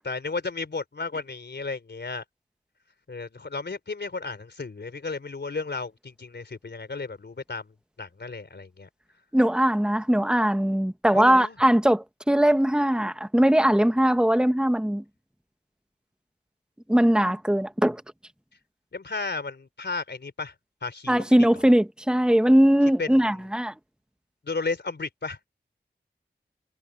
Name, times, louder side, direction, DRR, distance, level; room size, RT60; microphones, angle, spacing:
voice 1, 0.0-2.2 3.1-8.9 11.1-11.6 18.9-20.5 20.8-21.2 23.0-23.3 24.4-25.4, left 4 dB, 70° left, 3.8 m, -33 dB
voice 2, 9.3-15.0 16.9-18.0 21.1-23.7, equal, 5° right, 1.3 m, -20 dB
wide cardioid pair, 55°, 18 cm